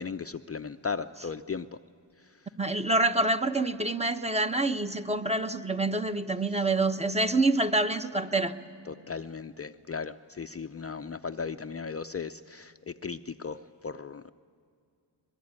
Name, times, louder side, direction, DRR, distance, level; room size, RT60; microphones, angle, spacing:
voice 1, 0.0-1.7 8.9-13.6 13.8-14.3, left 5 dB, 30° left, 9 dB, 0.6 m, -36 dB
voice 2, 2.6-8.5, right 2 dB, 15° right, 8 dB, 1.0 m, -26 dB
23.0 x 21.0 x 9.7 m, 2.3 s
cardioid pair, 75°, 45 cm